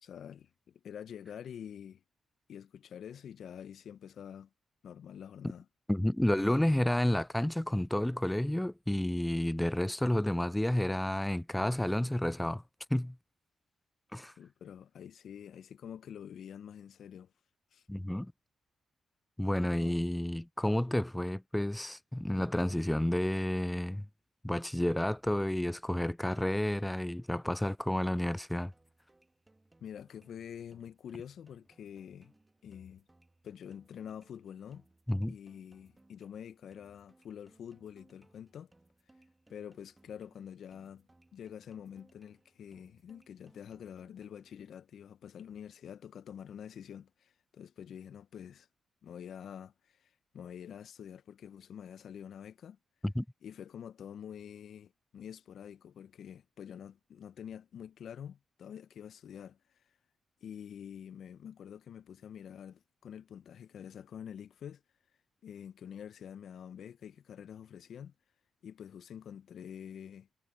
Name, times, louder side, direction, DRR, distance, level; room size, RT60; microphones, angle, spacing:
voice 1, 0.0-2.0 2.5-4.5 4.8-5.7 14.4-17.3 17.7-17.8 19.7-19.9 29.8-32.3 32.6-33.0 33.4-34.9 35.3-38.7 39.5-48.7 49.0-52.8 53.4-59.6 60.4-64.8 65.4-68.1 68.6-70.3, left 8 dB, 65° left, 1.2 m, -47 dB
voice 2, 5.9-12.6 12.9-13.2 14.1-14.3 17.9-18.3 19.4-24.1 24.4-28.7 35.1-35.3 53.0-53.3, left 1 dB, 10° left, 0.3 m, -30 dB
sound 1, 28.7-44.7, right 2 dB, 20° right, 1.9 m, -67 dB
hypercardioid pair, 45°, 0 cm